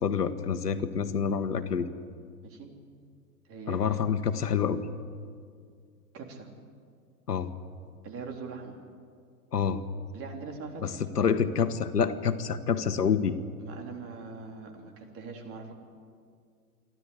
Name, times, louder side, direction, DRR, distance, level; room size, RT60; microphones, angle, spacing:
voice 1, 0.0-1.9 3.7-4.8 7.3-7.5 9.5-9.8 10.8-13.4, left 7 dB, 85° left, 11 dB, 1.4 m, -27 dB
voice 2, 3.5-3.8 6.1-6.5 8.0-8.8 10.1-10.8 13.6-15.7, right 5 dB, 30° right, 2 dB, 3.6 m, -41 dB
28.5 x 12.5 x 10.0 m, 2.2 s
hypercardioid pair, 105°, 46 cm